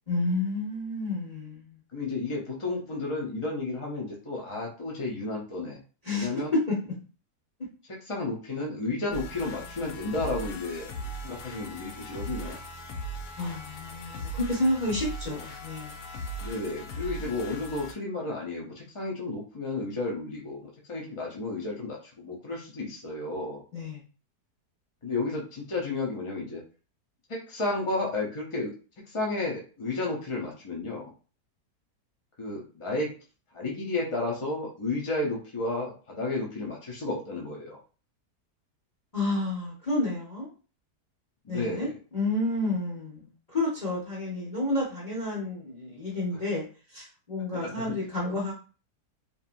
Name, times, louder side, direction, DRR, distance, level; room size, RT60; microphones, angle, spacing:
voice 1, 0.1-1.8 6.0-6.3 6.7-6.9 13.4-16.0 23.7-24.0 39.1-40.5 41.5-48.5, left 2 dB, 30° left, -5 dB, 0.8 m, -30 dB
voice 2, 1.9-5.8 6.1-6.5 8.0-10.9 11.2-12.6 16.4-23.6 25.0-26.6 27.3-28.7 29.1-31.1 32.4-33.1 33.5-37.8 41.4-42.0 47.5-47.9 48.2-48.4, left 2 dB, 55° left, -2 dB, 0.3 m, -32 dB
sound 1, 9.1-17.9, right 1 dB, 80° left, 1.2 m, -39 dB
2.9 x 2.6 x 2.5 m, 0.36 s
omnidirectional pair, 1.7 m